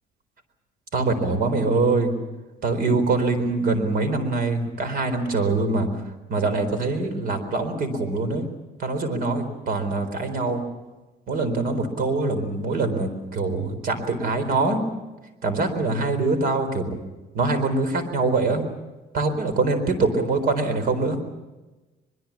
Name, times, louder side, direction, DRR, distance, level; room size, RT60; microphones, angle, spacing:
voice 1, 0.9-2.2 2.6-5.9 6.3-8.5 8.8-10.6 11.3-14.8 15.4-17.0 17.3-18.7 19.1-21.2, right 3 dB, 60° right, 10 dB, 4.1 m, -24 dB
22.5 x 22.5 x 7.4 m, 1.1 s
cardioid pair, 110°, 17 cm